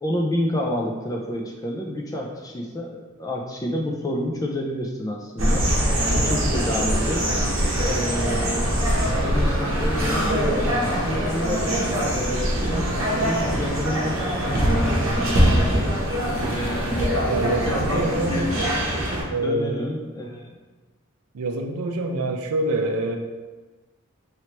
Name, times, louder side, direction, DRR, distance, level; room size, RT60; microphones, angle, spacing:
voice 1, 0.0-5.7 6.1-7.3 7.8-11.7 12.1-16.0 16.5-17.4 17.7-18.6 19.4-20.6, left 1 dB, 15° left, 0 dB, 0.3 m, -29 dB
sound 1, 5.4-19.2, equal, 60° right, 0.8 m, -23 dB
voice 2, 6.1-6.4 17.3-18.6 19.3-19.9 21.3-23.2, right 2 dB, 90° right, 3 dB, 0.4 m, -26 dB
3.1 x 3.0 x 2.9 m, 1.3 s
head